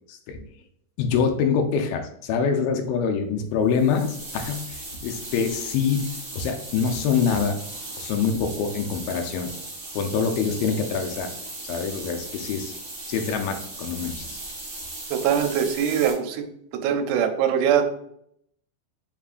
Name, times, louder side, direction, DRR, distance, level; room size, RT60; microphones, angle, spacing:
voice 1, 0.1-0.5 1.0-6.1 6.3-7.6 8.0-9.5 10.0-11.3 11.7-12.7 13.1-14.4, left 6 dB, 85° left, 5 dB, 2.3 m, -25 dB
sound 1, 3.7-16.1, right 2 dB, 65° right, 0.6 m, -37 dB
voice 2, 15.1-16.5 16.8-17.9, right 8 dB, 85° right, 6 dB, 2.5 m, -22 dB
5.4 x 3.6 x 2.4 m, 0.71 s
omnidirectional pair, 4.3 m